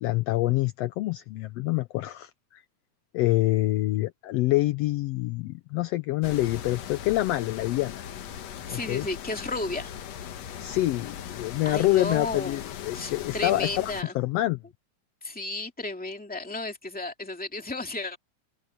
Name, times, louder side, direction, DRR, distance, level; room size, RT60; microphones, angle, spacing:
voice 1, 0.0-2.6 3.1-8.0 8.7-9.1 10.6-14.6, left 17 dB, 85° left, 1.4 m, -26 dB
sound 1, 6.2-14.0, left 9 dB, 65° left, 2.2 m, -39 dB
voice 2, 8.7-9.9 11.6-12.6 12.9-14.1 15.2-18.2, left 2 dB, 5° left, 1.9 m, -33 dB
omnidirectional pair, 3.5 m